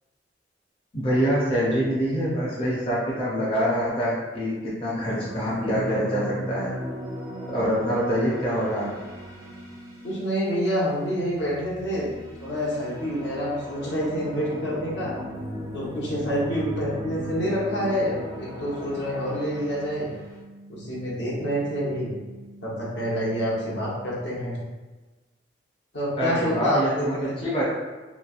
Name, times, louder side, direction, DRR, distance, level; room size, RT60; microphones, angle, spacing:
voice 1, 0.9-6.7 7.5-8.9 26.2-27.6, equal, 30° left, -8 dB, 0.5 m, -25 dB
sound 1, 5.0-10.7 11.1-20.3, equal, 20° right, 0.4 m, -37 dB
voice 2, 10.0-12.1 12.4-15.2 15.7-20.1 20.7-22.1 22.6-24.6 25.9-27.3, equal, 70° left, -5 dB, 0.8 m, -27 dB
sound 2, 14.0-24.0, right 1 dB, 75° right, 0.6 m, -47 dB
3.0 x 2.6 x 2.4 m, 1.3 s
head